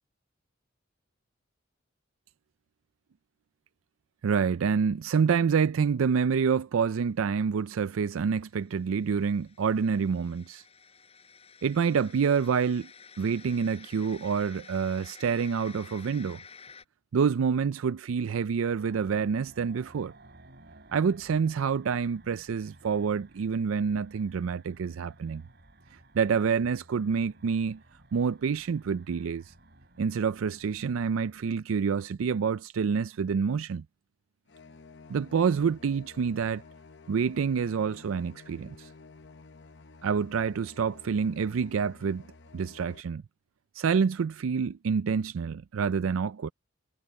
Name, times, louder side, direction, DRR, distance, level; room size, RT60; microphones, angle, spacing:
voice 1, 4.2-10.6 11.6-12.9 13.2-16.4 17.1-20.1 20.9-25.4 26.1-27.8 28.1-29.5 30.0-33.8 35.1-36.6 37.1-38.9 40.0-42.2 42.5-43.2 43.7-46.5, right 6 dB, 90° right, 0.4 m, -27 dB
sound 1, 8.4-16.8, left 5 dB, 30° left, 7.1 m, -52 dB
sound 2, 18.7-31.5, right 2 dB, 55° right, 3.4 m, -56 dB
sound 3, 34.5-43.0, left 3 dB, 60° left, 0.9 m, -52 dB
head